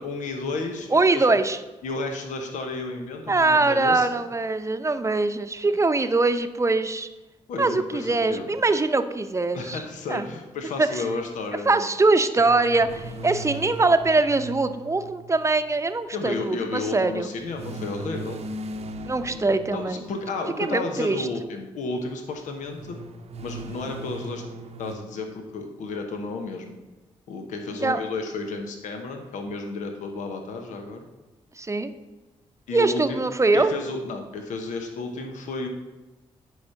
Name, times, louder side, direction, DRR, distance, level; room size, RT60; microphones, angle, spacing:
voice 1, 0.0-1.3 1.8-4.1 7.5-8.5 9.5-11.9 16.1-18.4 19.7-23.0 23.4-24.4 24.8-26.8 27.3-31.0 32.7-33.2 33.5-35.7, left 3 dB, 80° left, 4 dB, 1.0 m, -32 dB
voice 2, 0.9-1.6 3.3-7.1 7.6-9.8 10.1-10.3 10.8-11.0 11.7-17.3 19.0-20.0 20.6-21.3 27.8-28.0 31.6-31.9 32.7-33.7, right 3 dB, 25° right, 10 dB, 0.7 m, -22 dB
sound 1, 12.4-15.9 17.5-20.6 22.7-25.0, right 1 dB, 60° right, 0.8 m, -38 dB
9.4 x 5.0 x 5.7 m, 1.1 s
supercardioid pair, 60°, 13 cm